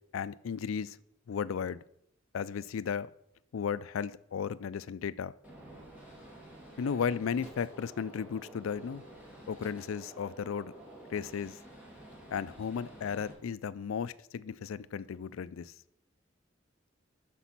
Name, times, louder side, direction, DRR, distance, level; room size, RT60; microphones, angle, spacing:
voice 1, 0.1-1.0 1.3-1.8 2.3-3.1 3.5-5.3 6.8-9.0 9.5-10.7 11.1-11.6 12.3-15.7, left 7 dB, 85° left, 0.4 m, -35 dB
Gunshot gunfire, 5.4-13.3, right 1 dB, 10° right, 2.5 m, -50 dB
8.1 x 6.0 x 5.9 m
head